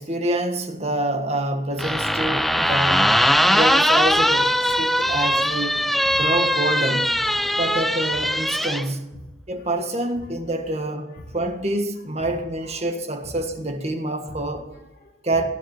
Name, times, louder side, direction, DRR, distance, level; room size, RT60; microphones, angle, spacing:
voice 1, 0.0-3.1 3.5-5.9 6.2-7.1 7.6-9.1 9.5-14.7 15.2-15.4, right 1 dB, 35° right, 1.7 m, -26 dB
sound 1, 1.8-8.8, equal, ahead, 0.5 m, -20 dB
voice 2, 2.1-2.5 4.0-4.3 4.7-5.2 5.5-6.3 7.2-7.6 8.1-8.2 9.1-9.2 9.6-9.9 10.2-10.6 11.1-11.4 12.2-12.9 13.2-13.3 14.3-15.4, left 1 dB, 50° left, 2.1 m, -45 dB
19.0 x 10.0 x 7.2 m
head